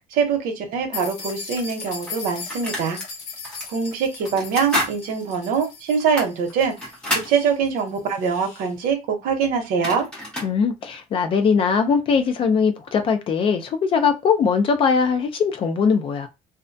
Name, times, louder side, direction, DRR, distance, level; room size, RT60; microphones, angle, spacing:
voice 1, 0.1-3.0 3.7-10.1, right 6 dB, 80° right, 0.8 m, -23 dB
sound 1, 0.9-8.7, left 5 dB, 60° left, 0.8 m, -38 dB
sound 2, 1.3-1.4 2.1-3.1 3.4-3.7 4.2-5.0 5.3-5.4 6.0-7.3 9.3-9.4 9.6-10.5, left 1 dB, 5° left, 0.9 m, -29 dB
voice 2, 10.4-16.3, left 5 dB, 40° left, 0.4 m, -20 dB
2.3 x 2.1 x 2.6 m
cardioid pair, 165°, 15 cm